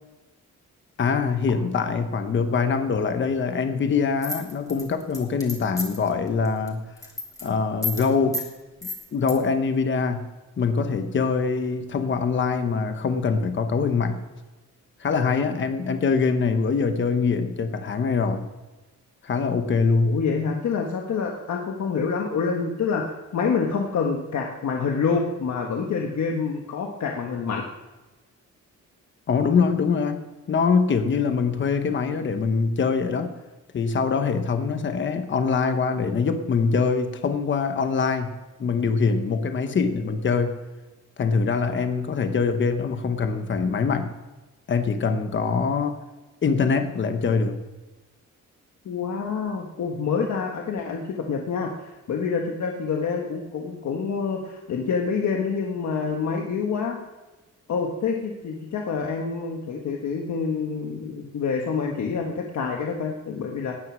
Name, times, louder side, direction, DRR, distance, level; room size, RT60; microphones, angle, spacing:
voice 1, 1.0-6.8 7.4-8.4 9.1-10.3 10.6-14.2 15.0-18.5 19.2-20.2 29.3-33.3 33.7-38.3 38.6-40.6 41.2-44.1 44.7-46.0 46.4-47.6, left 5 dB, 40° left, 7 dB, 1.0 m, -23 dB
sound 1, 4.2-6.1 6.5-6.7 7.0-7.5 7.8-8.1 8.3-8.5 8.8-9.3, left 2 dB, 10° left, 2.4 m, -31 dB
voice 2, 20.0-27.7 48.8-57.0 57.7-63.8, left 5 dB, 60° left, 1 dB, 1.4 m, -27 dB
18.5 x 9.4 x 6.2 m, 1.1 s
wide cardioid pair, 175°, 31 cm